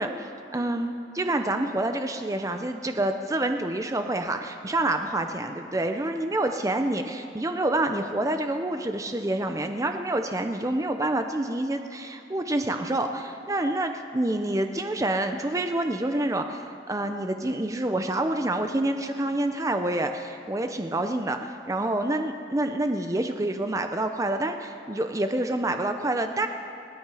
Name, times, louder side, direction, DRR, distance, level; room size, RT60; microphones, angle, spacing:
voice 1, 0.0-26.5, right 1 dB, 15° right, 6 dB, 0.5 m, -27 dB
29.0 x 9.6 x 4.8 m, 2.9 s
head